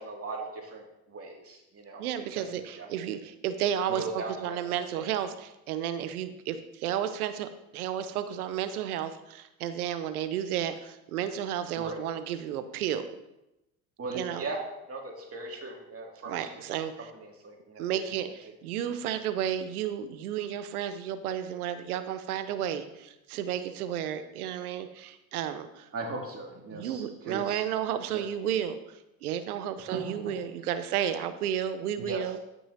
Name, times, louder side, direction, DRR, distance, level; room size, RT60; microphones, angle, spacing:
voice 1, 0.0-2.0 2.3-2.4 2.7-2.9 3.9-5.1 11.8-12.1 14.0-14.6 14.9-16.8 17.2-18.1 25.9-27.6 28.1-28.2 29.9-30.0 32.0-32.2, right 3 dB, 30° right, 0 dB, 2.5 m, -38 dB
voice 2, 2.0-13.1 14.1-14.5 16.3-16.9 17.8-25.9 26.7-32.4, right 10 dB, 90° right, 11 dB, 0.7 m, -32 dB
13.5 x 5.5 x 2.8 m, 0.92 s
hypercardioid pair, 75°, 43 cm